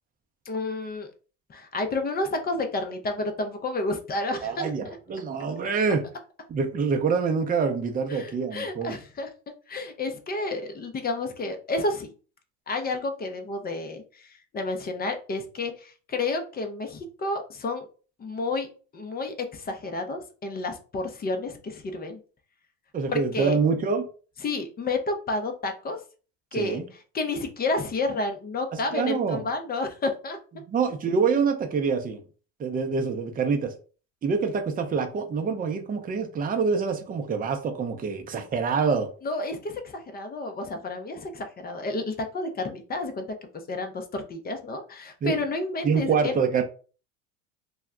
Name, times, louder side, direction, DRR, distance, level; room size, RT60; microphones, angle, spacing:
voice 1, 0.5-1.1 1.5-4.7 8.1-9.3 9.7-12.1 12.7-17.9 18.2-18.7 18.9-22.2 23.1-23.6 24.4-26.0 26.5-30.4 39.2-43.3 43.7-46.3, left 2 dB, 25° left, 0.6 m, -30 dB
voice 2, 4.4-6.0 6.5-9.0 22.9-24.1 26.5-26.9 28.7-29.5 30.7-32.2 32.6-33.7 34.2-39.1 45.2-45.4 45.8-46.6, right 5 dB, 20° right, 0.5 m, -26 dB
2.3 x 2.1 x 3.6 m
hypercardioid pair, 80°, 41 cm